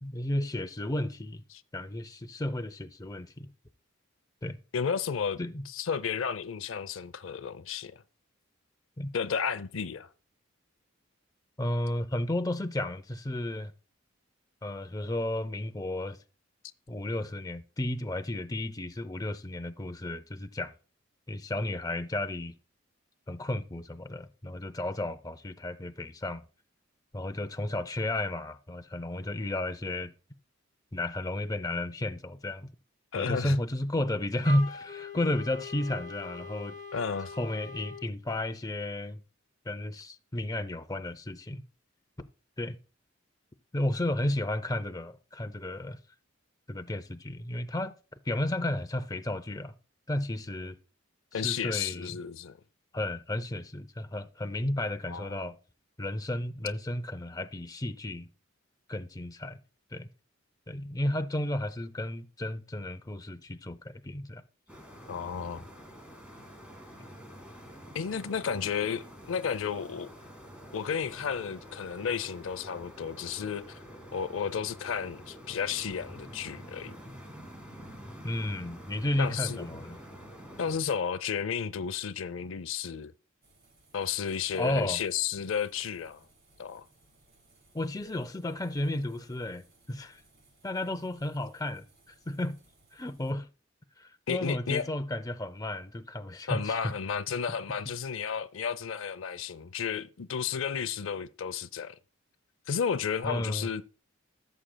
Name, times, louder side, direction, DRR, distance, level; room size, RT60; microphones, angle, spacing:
voice 1, 0.0-1.4 1.7-3.5 4.4-4.6 5.4-5.6 9.0-9.1 11.6-13.7 14.6-16.2 16.9-20.7 21.3-22.5 23.3-26.4 27.1-30.1 30.9-32.7 33.1-36.8 37.4-39.2 39.7-41.6 42.6-42.8 43.7-46.0 46.7-48.0 48.3-49.7 50.1-50.8 51.4-52.1 52.9-55.6 56.0-58.3 58.9-59.6 59.9-60.1 60.7-64.4 78.2-80.0 84.6-85.0 87.7-90.2 90.6-92.6 92.9-93.5 94.0-96.9 103.2-103.7, left 1 dB, 20° left, 0.5 m, -33 dB
voice 2, 4.7-5.4 5.7-8.0 9.1-10.1 33.1-33.6 36.9-37.3 51.3-52.6 55.1-55.5 65.1-65.6 67.9-70.1 70.7-73.8 74.1-77.0 79.2-79.8 80.6-83.1 83.9-86.2 86.6-86.9 94.3-94.8 96.5-102.0 102.7-103.8, left 7 dB, 70° left, 0.5 m, -32 dB
Wind instrument woodwind instrument, 34.4-38.1, left 2 dB, 35° left, 0.9 m, -42 dB
sound 1, 64.7-80.8, equal, 5° right, 1.8 m, -47 dB
sound 2, 83.4-93.3, right 2 dB, 50° right, 4.1 m, -64 dB
16.0 x 7.4 x 2.2 m
head